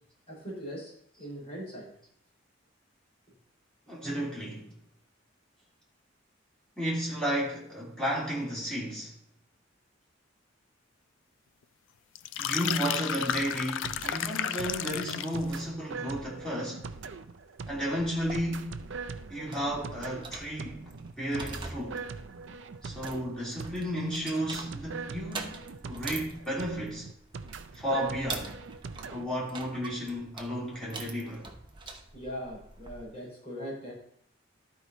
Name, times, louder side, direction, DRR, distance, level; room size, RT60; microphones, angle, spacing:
voice 1, 0.3-1.9 32.1-33.9, equal, 30° left, 4.1 m, -40 dB
voice 2, 3.9-4.7 6.8-9.1 12.4-16.9 17.7-18.8 19.3-22.1 22.8-27.0 27.7-28.6 29.1-31.5, equal, 5° left, 2.9 m, -33 dB
sound 1, 12.1-15.4, left 9 dB, 70° left, 0.3 m, -32 dB
sound 2, 13.3-29.3, right 4 dB, 65° right, 0.5 m, -42 dB
sound 3, 18.0-33.0, right 4 dB, 25° right, 0.8 m, -45 dB
12.0 x 4.8 x 4.0 m
head